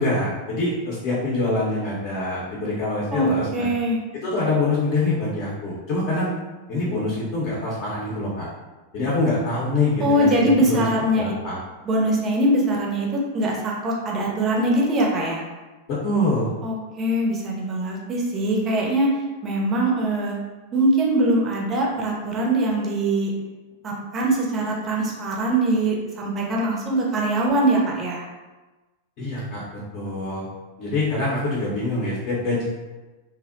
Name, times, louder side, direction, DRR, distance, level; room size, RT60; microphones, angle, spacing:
voice 1, 0.0-3.7 4.2-6.3 6.7-8.4 8.9-10.9 11.2-11.6 15.9-16.5 29.2-29.6 29.9-30.5 30.8-32.6, left 2 dB, 40° left, -6 dB, 0.7 m, -25 dB
voice 2, 3.1-4.0 10.0-11.3 11.8-15.4 16.6-19.1 19.4-20.4 20.7-23.3 23.8-28.2, right 1 dB, 25° right, -2 dB, 0.5 m, -22 dB
2.6 x 2.0 x 2.5 m, 1.2 s
figure-of-eight pair, 90°, 0 cm